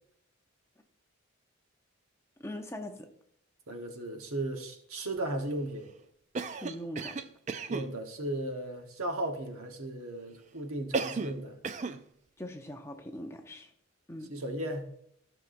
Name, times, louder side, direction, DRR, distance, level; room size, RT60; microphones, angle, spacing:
voice 1, 2.4-3.1 6.5-7.2 12.4-13.7 14.1-14.4, left 1 dB, 15° left, 0.6 m, -41 dB
voice 2, 3.7-5.9 7.7-11.6 14.3-14.8, right 1 dB, 90° right, 1.2 m, -36 dB
Cough, 6.3-7.9 10.9-11.4 11.6-12.0, right 4 dB, 35° right, 0.3 m, -34 dB
15.0 x 5.8 x 2.6 m
head